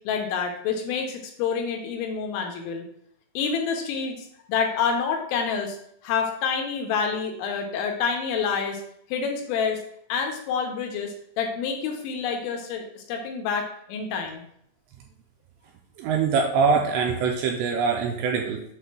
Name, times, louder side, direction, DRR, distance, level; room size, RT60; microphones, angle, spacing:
voice 1, 0.0-2.9 3.3-5.8 6.0-8.8 9.1-9.8 10.1-14.4, left 6 dB, 80° left, 2 dB, 3.2 m, -28 dB
voice 2, 16.0-18.6, right 5 dB, 80° right, 1 dB, 2.6 m, -23 dB
8.2 x 2.7 x 6.0 m, 0.70 s
omnidirectional pair, 5.6 m